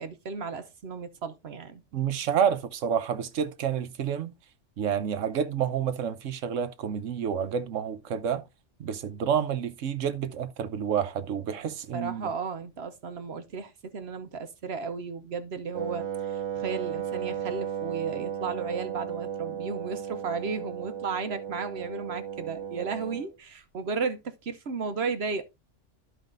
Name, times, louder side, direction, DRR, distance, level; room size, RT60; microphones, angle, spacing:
voice 1, 0.0-1.8 11.9-25.4, right 5 dB, 60° right, 1.1 m, -34 dB
voice 2, 1.9-4.3 4.8-8.4 8.8-12.3, right 8 dB, 90° right, 1.2 m, -29 dB
Wind instrument woodwind instrument, 15.7-23.3, right 9 dB, 35° right, 0.5 m, -35 dB
13.5 x 4.9 x 2.6 m
omnidirectional pair, 1.3 m